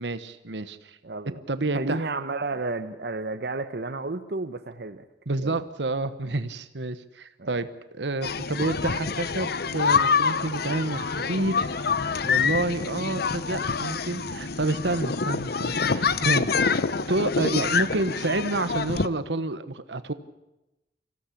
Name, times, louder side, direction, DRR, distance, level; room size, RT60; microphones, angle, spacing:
voice 1, 0.0-1.0 1.5-2.1 5.3-7.7 7.9-16.8 17.1-20.1, right 2 dB, 80° right, 12 dB, 1.1 m, -29 dB
voice 2, 1.0-1.4 1.7-5.0 5.4-5.6 7.4-7.6, right 3 dB, 65° right, 8 dB, 1.0 m, -32 dB
sound 1, 8.2-19.1, left 5 dB, 60° left, 0.8 m, -26 dB
25.5 x 16.5 x 8.5 m, 0.97 s
head